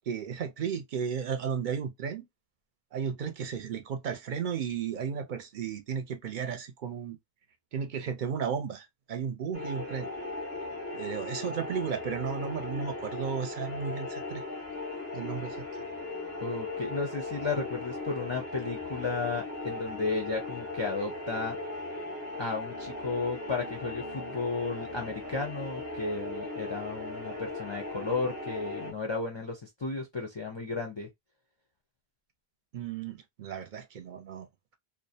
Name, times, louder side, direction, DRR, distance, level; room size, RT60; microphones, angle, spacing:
voice 1, 0.1-2.2 2.9-7.2 7.7-10.1 10.9-14.4 15.1-15.6 32.7-34.5, right 7 dB, 60° right, 0.6 m, -34 dB
sound 1, 9.5-28.9, left 2 dB, 10° right, 0.6 m, -38 dB
voice 2, 16.4-21.6 22.4-31.1, left 3 dB, 40° left, 0.4 m, -34 dB
2.4 x 2.1 x 2.6 m
omnidirectional pair, 1.0 m